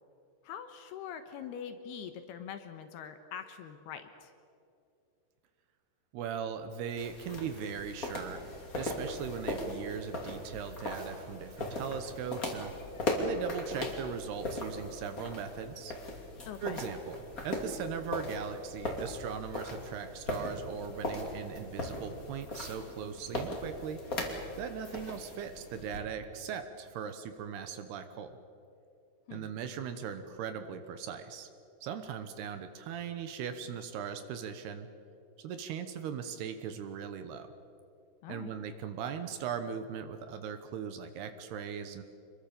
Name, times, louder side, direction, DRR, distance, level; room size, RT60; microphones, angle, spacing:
voice 1, 0.4-4.3 16.5-16.8 29.3-29.5 38.2-38.5, left 8 dB, 70° left, 8 dB, 2.7 m, -43 dB
voice 2, 6.1-12.7 13.2-15.9 16.6-24.0 24.6-28.4 29.3-31.5 31.8-34.9 35.4-37.5 38.3-42.0, right 7 dB, 75° right, 9 dB, 2.8 m, -39 dB
sound 1, 7.0-26.0, left 1 dB, 25° left, 2.2 m, -39 dB
26.5 x 22.0 x 7.0 m, 2.6 s
omnidirectional pair, 5.3 m